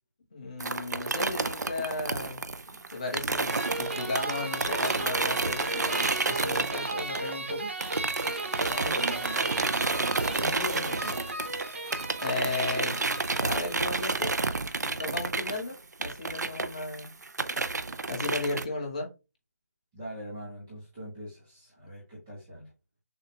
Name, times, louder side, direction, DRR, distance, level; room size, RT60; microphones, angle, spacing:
voice 1, 0.3-2.4 2.9-7.7 12.2-13.0 13.3-14.5 14.7-17.1 18.1-19.1, left 3 dB, 25° left, 1.2 m, -35 dB
sound 1, 0.6-7.5 7.8-18.7, right 3 dB, 70° right, 0.5 m, -30 dB
sound 2, 3.5-14.2, right 2 dB, 40° right, 1.1 m, -36 dB
voice 2, 8.6-11.4 15.4-15.5 19.9-22.7, left 1 dB, 5° right, 0.8 m, -40 dB
6.4 x 2.4 x 2.9 m
figure-of-eight pair, 175°, 10 cm